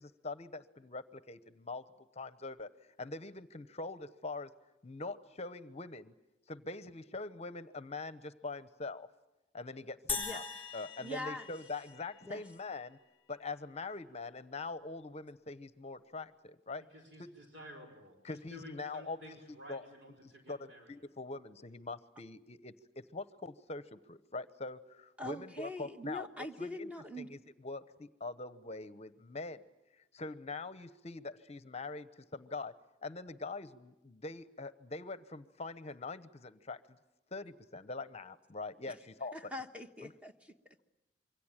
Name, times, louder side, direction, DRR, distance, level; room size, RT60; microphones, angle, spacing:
voice 1, 0.0-1.8 2.1-2.7 3.0-4.5 4.8-6.1 6.5-9.1 9.5-10.4 10.7-13.0 13.3-16.8 17.2-17.3 18.2-19.9 20.2-22.7 23.1-26.3 26.6-26.9 27.2-29.6 29.9-32.7 33.0-37.0 37.3-39.5 40.0-40.1, left 3 dB, 35° left, 14 dB, 0.9 m, -43 dB
sound 1, 10.1-12.5, left 4 dB, 10° left, 3.3 m, -41 dB
voice 2, 11.0-11.5 12.3-12.4 25.2-27.3 38.8-39.0 39.3-40.5, left 1 dB, 5° right, 6 dB, 1.3 m, -43 dB
voice 3, 16.9-20.9, equal, 65° right, 2 dB, 5.1 m, -52 dB
27.0 x 24.0 x 8.9 m, 0.92 s
head